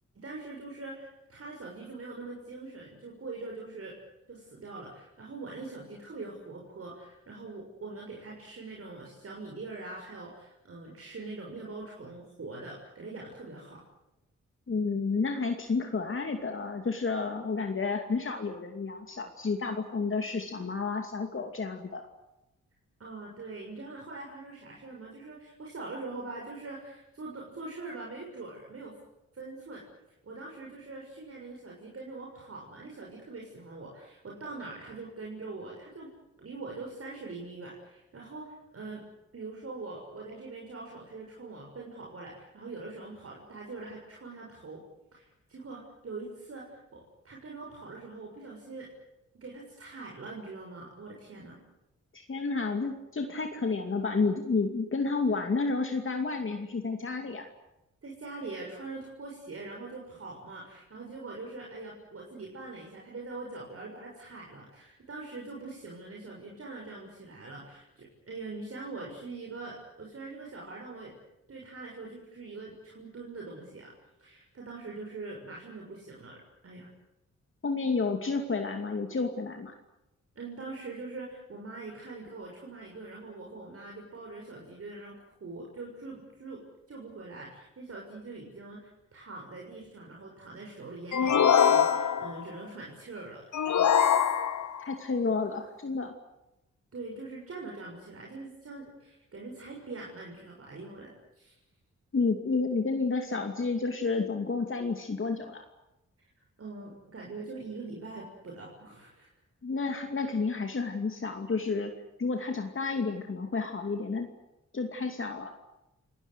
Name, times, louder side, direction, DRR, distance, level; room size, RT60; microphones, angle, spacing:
voice 1, 0.1-3.9 4.3-13.8 23.0-29.0 29.3-29.8 30.2-36.1 36.4-39.0 39.3-44.8 45.1-48.9 49.3-51.6 58.0-71.1 71.5-73.9 74.2-76.9 80.3-85.1 85.4-86.6 86.9-93.9 96.9-101.5 106.6-109.3, right 3 dB, 50° right, -2 dB, 6.8 m, -43 dB
voice 2, 14.7-22.0 52.1-57.5 77.6-79.7 94.8-96.1 102.1-105.6 109.6-111.9 112.2-114.3 114.7-115.5, left 4 dB, 45° left, 4 dB, 2.6 m, -30 dB
sound 1, 91.1-92.4 93.5-94.8, left 8 dB, 80° left, 1.8 m, -23 dB
29.5 x 19.0 x 8.1 m, 0.90 s
wide cardioid pair, 100°, 30 cm